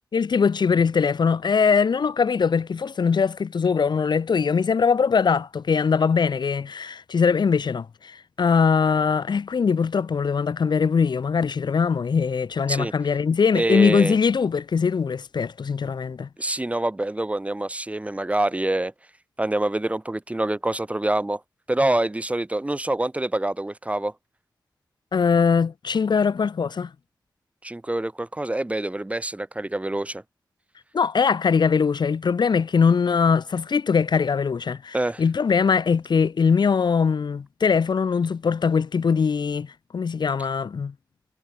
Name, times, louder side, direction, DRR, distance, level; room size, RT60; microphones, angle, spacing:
voice 1, 0.1-16.3 25.1-26.9 30.9-40.9, left 5 dB, 80° left, 5.3 m, -21 dB
voice 2, 13.5-14.2 16.4-18.9 19.4-21.4 21.7-24.1 27.6-30.2 34.9-35.2, right 1 dB, 20° right, 5.2 m, -26 dB
wide cardioid pair, 115°, 7 cm